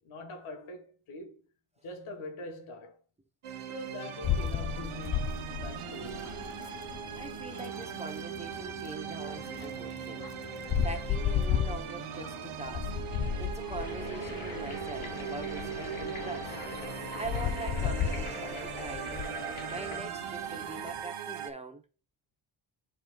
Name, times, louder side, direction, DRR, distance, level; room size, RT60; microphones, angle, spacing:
voice 1, 0.0-1.4 1.8-3.0 3.7-6.5, left 1 dB, 90° left, 1.5 m, -44 dB
sound 1, 3.4-21.5, right 9 dB, 90° right, 1.0 m, -40 dB
sound 2, 4.2-21.0, left 8 dB, 45° left, 0.6 m, -35 dB
voice 2, 7.1-10.3 10.5-12.9 13.4-16.5 16.8-19.3 19.7-21.8, right 3 dB, 15° right, 0.7 m, -43 dB
sound 3, 13.8-20.0, left 3 dB, 70° left, 4.0 m, -42 dB
10.0 x 4.3 x 2.3 m
wide cardioid pair, 150°, 48 cm